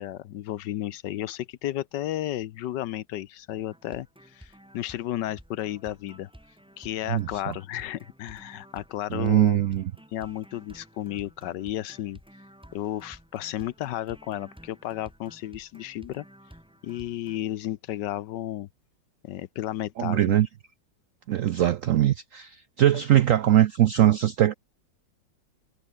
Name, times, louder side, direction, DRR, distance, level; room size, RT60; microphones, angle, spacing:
voice 1, 0.0-6.3 6.8-9.6 10.1-12.2 12.7-16.2 16.8-18.7 19.2-20.4, left 13 dB, 75° left, 1.3 m, -33 dB
sound 1, 3.7-17.4, equal, 5° right, 1.8 m, -52 dB
voice 2, 7.1-7.5 9.1-9.9 20.0-20.5 21.3-24.5, right 12 dB, 75° right, 0.7 m, -21 dB
omnidirectional pair, 2.0 m